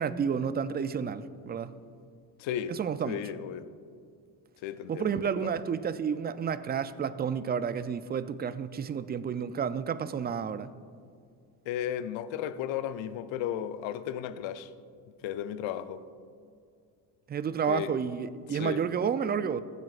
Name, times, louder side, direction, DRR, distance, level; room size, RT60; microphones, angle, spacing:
voice 1, 0.0-1.7 2.7-3.2 4.9-10.7 17.3-19.6, right 7 dB, 20° right, 0.3 m, -31 dB
voice 2, 2.4-2.8 3.1-3.7 4.6-5.6 11.7-14.7 15.2-16.0 17.7-18.0 18.5-18.9, left 10 dB, 65° left, 0.6 m, -34 dB
16.0 x 7.6 x 2.4 m
supercardioid pair, 60°, 50 cm